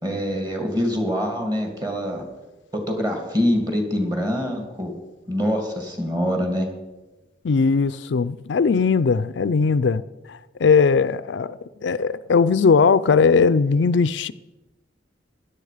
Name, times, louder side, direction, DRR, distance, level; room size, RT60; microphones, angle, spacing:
voice 1, 0.0-2.2 2.7-4.9 5.3-6.7, equal, 20° right, 2.5 m, -24 dB
voice 2, 7.4-10.0 10.3-14.3, left 5 dB, 70° left, 0.4 m, -19 dB
16.5 x 11.0 x 5.0 m
head